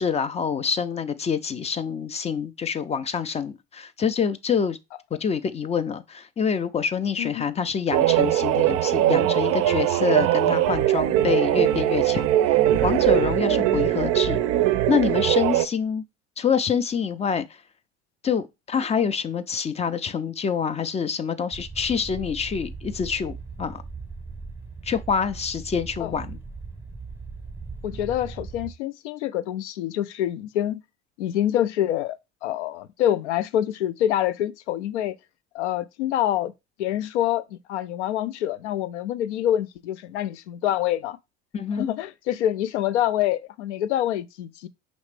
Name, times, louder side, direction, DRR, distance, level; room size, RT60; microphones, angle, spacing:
voice 1, 0.0-4.8 5.2-14.4 14.9-16.0 16.4-17.6 18.2-23.8 24.8-26.4 41.5-41.9, left 7 dB, 20° left, 0.4 m, -26 dB
sound 1, 7.9-15.7, right 13 dB, 45° right, 0.5 m, -21 dB
sound 2, 21.5-28.7, right 4 dB, 5° right, 0.8 m, -39 dB
voice 2, 27.8-30.8 31.2-35.2 35.5-36.5 36.8-41.2 41.7-44.7, left 11 dB, 75° left, 0.5 m, -26 dB
5.2 x 3.1 x 3.2 m
hypercardioid pair, 70°, 35 cm